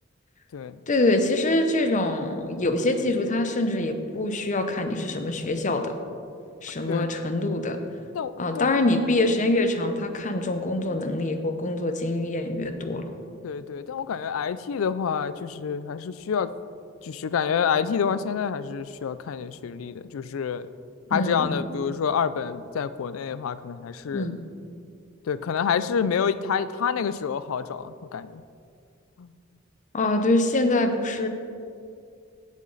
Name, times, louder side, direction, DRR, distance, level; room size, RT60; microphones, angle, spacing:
voice 1, 0.9-5.9 6.6-7.8 8.4-13.1 21.1-21.6 24.1-24.4 29.9-31.3, left 2 dB, 40° left, 7 dB, 0.7 m, -24 dB
voice 2, 8.1-8.8 13.4-16.5 17.0-20.7 21.1-24.3 25.3-28.4 29.2-29.3, left 7 dB, 80° left, 14 dB, 0.4 m, -28 dB
10.5 x 7.3 x 3.9 m, 2.4 s
head